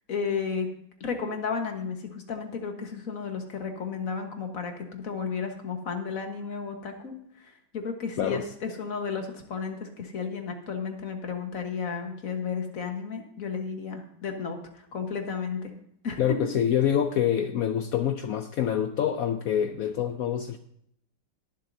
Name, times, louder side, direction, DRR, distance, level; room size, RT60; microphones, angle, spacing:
voice 1, 0.1-0.7 1.0-15.7 16.0-16.4, left 5 dB, 50° left, 4 dB, 1.7 m, -33 dB
voice 2, 16.2-20.6, left 9 dB, 70° left, 9 dB, 0.8 m, -26 dB
22.5 x 7.5 x 2.7 m, 0.72 s
omnidirectional pair, 2.0 m